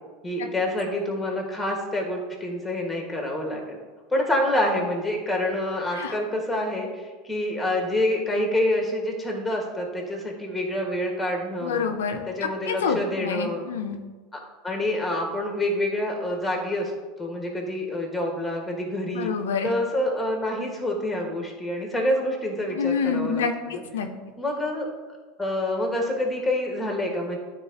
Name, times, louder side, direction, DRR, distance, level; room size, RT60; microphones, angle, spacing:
voice 1, 0.2-3.8 4.1-11.9 12.2-13.6 14.3-16.9 17.2-19.3 19.6-23.8 24.4-24.9 25.4-27.4, left 1 dB, 5° left, 0 dB, 1.5 m, -27 dB
voice 2, 11.6-14.0 19.1-19.7 22.7-23.5 23.9-24.1, left 6 dB, 90° left, 5 dB, 0.5 m, -27 dB
9.6 x 3.8 x 2.8 m, 1.3 s
supercardioid pair, 110°, 0 cm